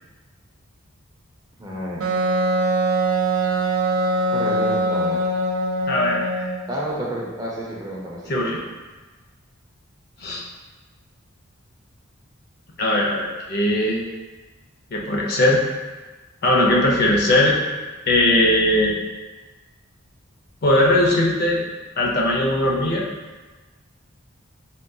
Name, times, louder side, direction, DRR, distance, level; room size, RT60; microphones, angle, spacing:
voice 1, 1.6-2.0 4.3-5.2 6.7-8.3, equal, 20° right, -4 dB, 0.5 m, -30 dB
Wind instrument woodwind instrument, 2.0-6.6, right 2 dB, 85° right, 0.4 m, -22 dB
voice 2, 5.9-6.5 8.3-8.6 10.2-10.4 12.8-14.1 14.9-15.6 16.4-17.6 18.1-19.0 20.6-21.6 22.0-23.1, left 1 dB, 50° left, -2 dB, 0.5 m, -19 dB
3.6 x 2.6 x 2.2 m, 1.2 s
head